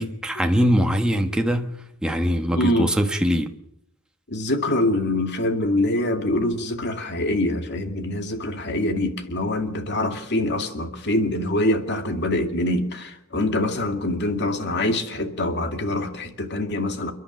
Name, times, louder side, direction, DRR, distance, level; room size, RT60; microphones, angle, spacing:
voice 1, 0.0-1.8 2.0-3.5, equal, 5° right, 1.3 m, -22 dB
voice 2, 2.5-2.9 4.3-17.1, left 1 dB, 55° left, 2.5 m, -24 dB
29.5 x 11.0 x 9.3 m
head